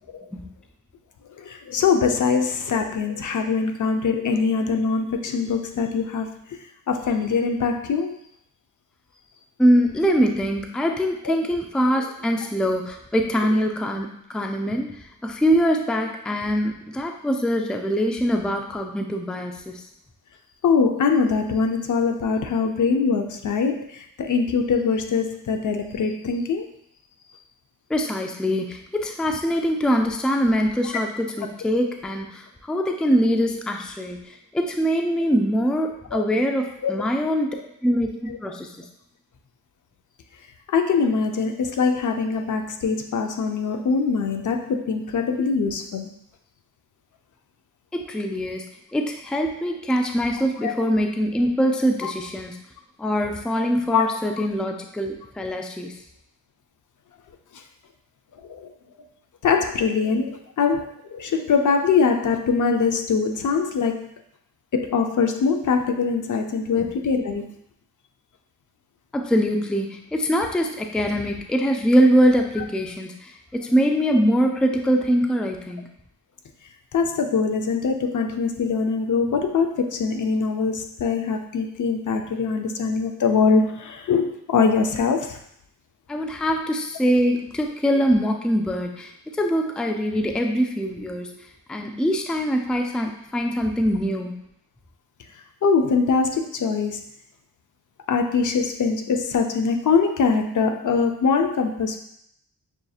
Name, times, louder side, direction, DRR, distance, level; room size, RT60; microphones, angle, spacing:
voice 1, 1.4-6.6 6.9-8.2 11.2-11.4 12.0-12.1 20.6-26.7 36.1-36.2 36.8-36.9 37.5-37.6 38.3-38.4 40.7-46.1 50.6-50.7 52.0-52.1 53.9-54.2 57.5-57.6 58.4-58.7 59.4-64.1 64.7-67.5 76.9-85.4 95.6-97.1 98.1-102.0, left 5 dB, 55° left, 5 dB, 0.5 m, -23 dB
voice 2, 9.6-19.8 27.9-37.5 37.8-38.8 47.9-48.7 48.9-52.6 53.0-56.0 69.1-75.9 86.1-91.4 91.7-94.3, equal, ahead, 3 dB, 0.4 m, -23 dB
6.1 x 2.7 x 2.3 m, 0.73 s
cardioid pair, 70°, 36 cm